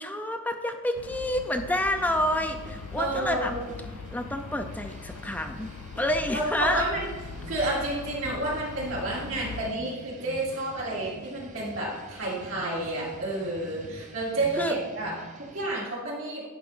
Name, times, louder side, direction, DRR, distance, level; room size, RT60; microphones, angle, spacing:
voice 1, 0.0-3.5 4.1-5.7 6.0-6.8 14.6-14.7, left 1 dB, 5° left, 5 dB, 0.5 m, -28 dB
sound 1, 0.9-9.7, left 5 dB, 80° left, 0.4 m, -41 dB
sound 2, 2.0-15.7, right 2 dB, 35° right, 0.7 m, -46 dB
voice 2, 2.9-3.7 6.3-7.1 7.5-16.4, right 2 dB, 70° right, -5 dB, 2.7 m, -30 dB
10.5 x 3.6 x 5.5 m, 1.2 s
head